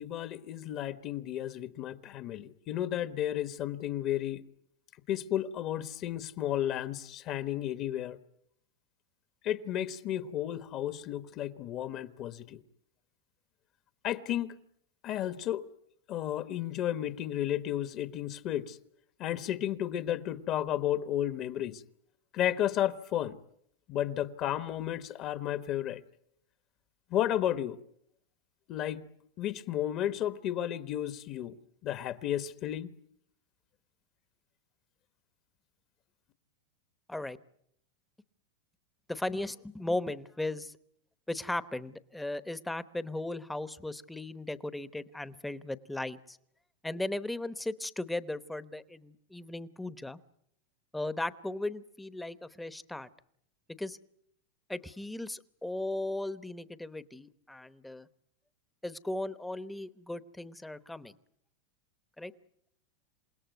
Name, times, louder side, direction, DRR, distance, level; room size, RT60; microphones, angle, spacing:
voice 1, 0.0-4.5 5.1-8.2 9.4-12.6 14.0-14.6 15.0-15.6 16.1-18.8 19.2-21.8 22.3-23.4 23.9-26.0 27.1-27.8 28.7-29.0 29.4-31.6 31.8-32.9, left 11 dB, 40° left, 1.1 m, -33 dB
voice 2, 39.1-40.8 41.3-46.4 46.8-50.2 50.9-53.1 53.7-54.0 54.7-58.1 58.8-61.1 62.2-62.3, left 2 dB, 5° left, 0.9 m, -37 dB
28.0 x 17.5 x 9.3 m
supercardioid pair, 140°, 0 cm